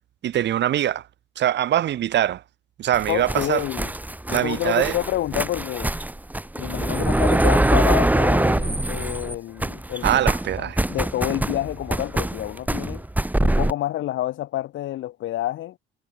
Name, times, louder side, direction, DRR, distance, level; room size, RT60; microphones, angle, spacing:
voice 1, 0.2-1.0 1.4-2.4 2.8-3.6 4.3-4.9 10.0-10.8, right 11 dB, 60° right, 0.7 m, -22 dB
sound 1, 2.9-9.3 9.6-13.7, right 1 dB, 10° right, 1.6 m, -23 dB
voice 2, 3.1-3.9 4.3-5.9 6.5-10.2 10.6-13.0 13.4-15.8, left 14 dB, 80° left, 1.5 m, -28 dB
cardioid pair, 90°, 20 cm